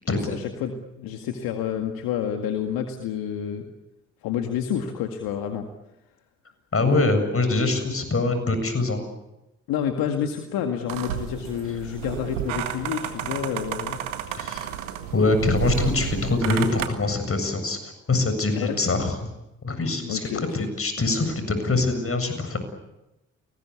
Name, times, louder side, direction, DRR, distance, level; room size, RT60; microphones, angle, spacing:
voice 1, 0.1-3.7 4.2-5.7 9.7-14.0 18.5-18.8 20.0-20.5, left 8 dB, 70° left, 5 dB, 2.0 m, -29 dB
voice 2, 6.7-9.0 14.4-14.7 15.1-19.3 19.6-22.6, left 3 dB, 35° left, 9 dB, 7.7 m, -24 dB
sound 1, 10.9-16.9, right 10 dB, 85° right, 1.7 m, -31 dB
30.0 x 20.0 x 8.4 m, 0.93 s
hypercardioid pair, 40°, 37 cm